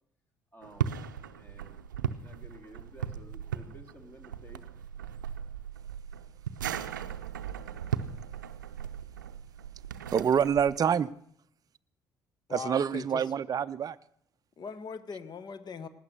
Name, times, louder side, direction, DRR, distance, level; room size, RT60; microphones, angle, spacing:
voice 1, 0.5-1.0 1.4-1.8 2.2-4.6, equal, 20° left, 6 dB, 2.7 m, -53 dB
sound 1, 0.6-10.8, right 9 dB, 85° right, 0.5 m, -37 dB
voice 2, 10.1-11.1 12.5-14.0, right 8 dB, 40° right, 13 dB, 0.5 m, -26 dB
voice 3, 12.5-13.2 14.6-15.9, left 5 dB, 45° left, 15 dB, 1.1 m, -40 dB
17.5 x 9.6 x 6.6 m, 0.67 s
hypercardioid pair, 50°, 10 cm